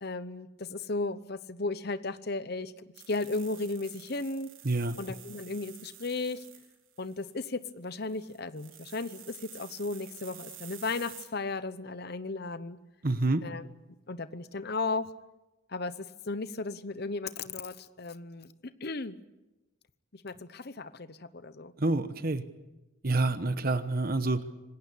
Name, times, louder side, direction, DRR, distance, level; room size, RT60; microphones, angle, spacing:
voice 1, 0.0-4.5 5.0-6.5 7.0-12.8 13.4-13.7 14.1-15.1 15.7-18.5 18.8-19.2 20.1-21.7 23.3-23.4, left 3 dB, 50° left, 13 dB, 0.9 m, -35 dB
sound 1, 2.9-7.5 7.9-11.3, right 11 dB, 75° right, 3.7 m, -50 dB
voice 2, 4.6-5.0 13.0-13.4 21.8-22.5 23.0-24.4, right 2 dB, 45° right, 11 dB, 1.1 m, -27 dB
26.5 x 19.0 x 8.4 m, 1.0 s
head